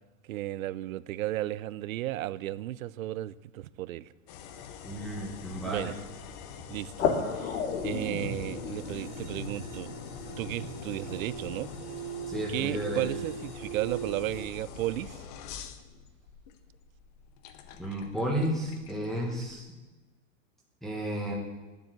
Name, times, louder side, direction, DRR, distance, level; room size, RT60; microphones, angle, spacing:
voice 1, 0.2-4.1 5.6-5.9 6.7-7.1 7.3-9.9 10.4-11.7 12.5-15.2, right 15 dB, 70° right, 0.6 m, -34 dB
sound 1, 4.3-19.6, left 8 dB, 30° left, 0.7 m, -46 dB
sound 2, 4.8-11.8, left 5 dB, 60° left, 1.8 m, -35 dB
voice 2, 4.8-5.9 12.3-13.1 17.8-19.7 20.8-21.4, equal, ahead, 1.1 m, -32 dB
sound 3, 8.8-14.5, right 8 dB, 35° right, 1.2 m, -41 dB
9.1 x 7.6 x 7.7 m
supercardioid pair, 165°, 42 cm